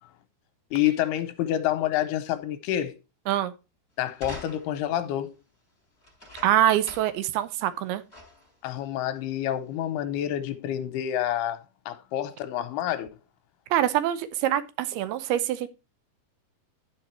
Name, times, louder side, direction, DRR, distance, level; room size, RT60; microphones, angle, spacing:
voice 1, 0.7-3.0 4.0-5.4 8.6-11.6 11.9-13.1, left 12 dB, 80° left, 2.6 m, -28 dB
sound 1, 4.1-4.9 6.0-7.3 7.6-7.7 8.1-8.5 9.3-9.4, left 2 dB, 15° left, 3.7 m, -44 dB
voice 2, 6.4-8.0 13.7-15.7, right 12 dB, 80° right, 2.4 m, -24 dB
11.5 x 5.1 x 4.3 m
omnidirectional pair, 5.0 m